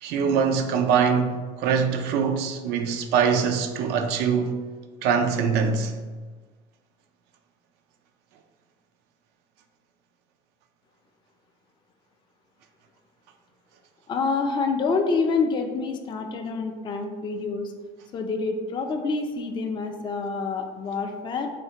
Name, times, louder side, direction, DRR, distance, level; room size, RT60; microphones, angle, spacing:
voice 1, 0.0-4.6 5.0-5.9, right 6 dB, 60° right, 0.4 m, -23 dB
voice 2, 14.1-17.7 18.1-21.5, left 4 dB, 25° left, 0.3 m, -27 dB
3.2 x 2.4 x 2.8 m
supercardioid pair, 100°, 19 cm